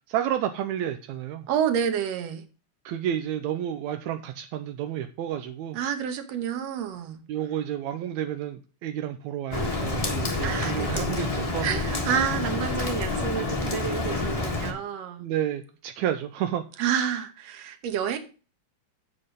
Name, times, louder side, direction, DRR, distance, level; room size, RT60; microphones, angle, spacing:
voice 1, 0.1-1.5 2.9-5.8 7.3-11.7 15.2-16.6, right 10 dB, 85° right, 8 dB, 2.0 m, -30 dB
voice 2, 1.5-2.4 5.7-7.2 10.4-11.3 11.6-15.3 16.8-18.2, right 8 dB, 65° right, 8 dB, 2.2 m, -29 dB
Rain, 9.5-14.7, left 2 dB, 40° left, 0.4 m, -28 dB
8.1 x 7.6 x 5.1 m, 0.36 s
omnidirectional pair, 3.3 m